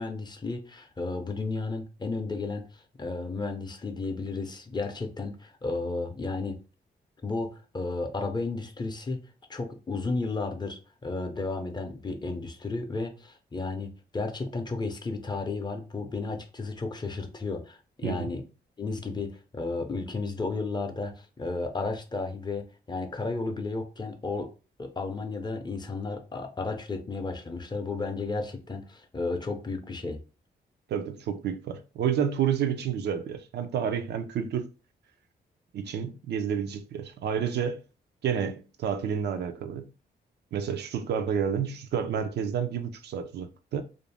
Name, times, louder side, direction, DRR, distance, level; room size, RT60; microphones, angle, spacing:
voice 1, 0.0-6.6 7.2-9.2 9.5-18.4 18.8-24.5 24.8-30.2, left 3 dB, 25° left, 0.5 m, -33 dB
voice 2, 30.9-34.7 35.7-37.8 38.2-39.9 40.5-43.8, right 8 dB, 75° right, 0.4 m, -30 dB
2.5 x 2.0 x 3.2 m
cardioid pair, 95°, 18 cm